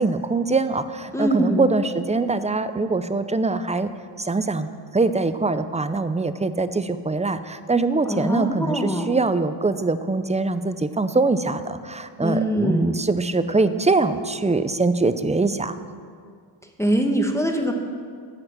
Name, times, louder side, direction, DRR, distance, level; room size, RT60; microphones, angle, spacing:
voice 1, 0.0-3.9 4.2-15.8, right 3 dB, 15° right, 11 dB, 0.4 m, -23 dB
voice 2, 1.1-1.7 8.1-9.1 12.2-12.9 16.8-17.7, right 1 dB, 5° left, 3 dB, 1.2 m, -23 dB
10.5 x 7.9 x 7.4 m, 2.1 s
wide cardioid pair, 110°, 50 cm